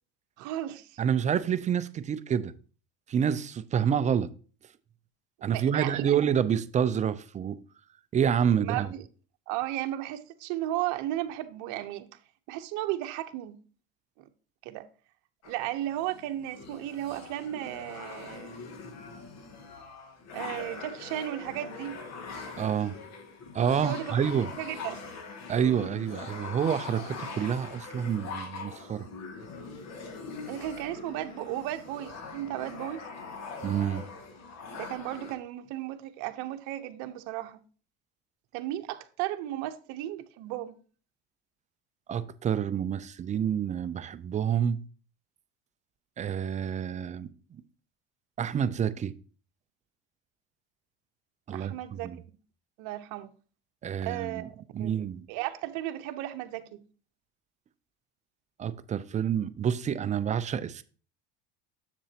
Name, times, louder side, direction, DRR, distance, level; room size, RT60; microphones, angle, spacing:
voice 1, 0.4-1.0 5.4-6.2 8.6-9.0 9.5-12.1 12.5-13.6 14.2-14.3 14.6-14.9 15.4-18.6 20.3-22.0 23.8-24.2 24.6-25.0 30.5-33.1 34.7-37.6 38.5-40.8 51.5-52.2 52.8-53.3 54.0-55.0 55.3-56.8, right 14 dB, 65° right, 0.8 m, -35 dB
voice 2, 1.0-2.5 3.1-4.3 5.4-7.6 8.1-8.9 22.6-23.0 23.5-24.5 25.5-29.1 33.6-34.0 42.1-44.8 46.2-47.6 48.4-49.1 51.5-51.7 52.0-52.2 53.8-54.5 54.7-55.2 58.6-60.8, right 8 dB, 25° right, 0.4 m, -28 dB
sound 1, 15.4-35.3, left 4 dB, 55° left, 1.7 m, -42 dB
7.2 x 6.9 x 2.8 m
supercardioid pair, 115°, 32 cm